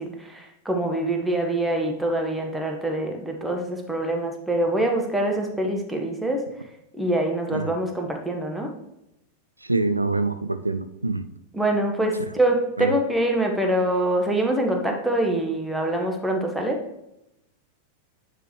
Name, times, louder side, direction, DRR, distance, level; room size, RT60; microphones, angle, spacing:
voice 1, 0.0-6.4 6.9-8.7 11.5-16.8, right 1 dB, 5° right, 2 dB, 1.1 m, -25 dB
voice 2, 9.6-11.2 12.8-12.9, right 3 dB, 85° right, 10 dB, 0.3 m, -25 dB
9.1 x 4.9 x 3.1 m, 0.85 s
figure-of-eight pair, 90°, 0 cm